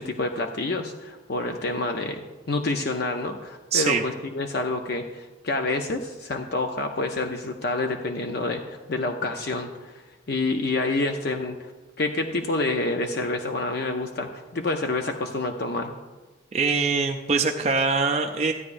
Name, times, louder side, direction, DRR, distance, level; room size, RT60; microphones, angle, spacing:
voice 1, 0.0-11.7 12.0-15.9, left 2 dB, 55° left, 4 dB, 0.6 m, -28 dB
voice 2, 3.7-4.0 16.5-18.5, right 4 dB, 35° right, 3 dB, 0.5 m, -23 dB
15.0 x 9.5 x 2.6 m, 1.2 s
head